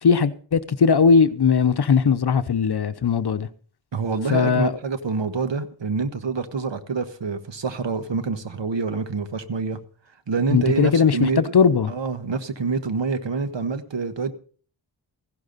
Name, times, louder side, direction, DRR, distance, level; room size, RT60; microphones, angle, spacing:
voice 1, 0.0-3.5 4.3-4.8 10.5-11.9, left 6 dB, 60° left, 0.8 m, -19 dB
voice 2, 3.9-9.8 10.3-11.4 11.9-14.3, right 4 dB, 75° right, 1.5 m, -26 dB
15.5 x 12.0 x 4.1 m
wide cardioid pair, 100°, 45 cm